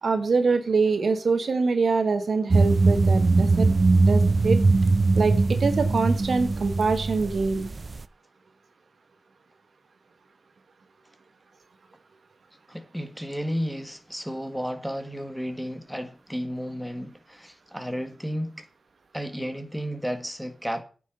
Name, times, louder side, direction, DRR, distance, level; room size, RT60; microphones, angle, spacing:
voice 1, 0.0-3.7 4.0-4.6 5.1-7.7, right 4 dB, 70° right, 1.3 m, -24 dB
sound 1, 2.5-8.0, right 3 dB, 45° right, 0.5 m, -21 dB
voice 2, 12.7-18.6 19.1-20.8, equal, ahead, 1.7 m, -33 dB
9.4 x 6.2 x 6.7 m
cardioid pair, 70°, 0 cm